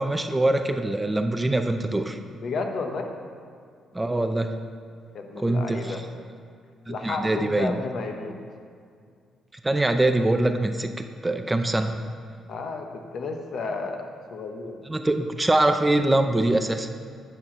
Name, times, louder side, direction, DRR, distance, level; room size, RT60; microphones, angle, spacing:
voice 1, 0.0-2.2 3.9-4.5 5.4-6.0 6.9-7.8 9.6-10.9 11.2-12.0 14.9-16.9, right 2 dB, 15° right, 7 dB, 0.4 m, -23 dB
voice 2, 2.4-3.1 5.1-6.0 6.9-8.4 12.5-14.8, left 3 dB, 60° left, 4 dB, 0.8 m, -32 dB
8.9 x 4.3 x 5.8 m, 2.2 s
cardioid pair, 90°, 0 cm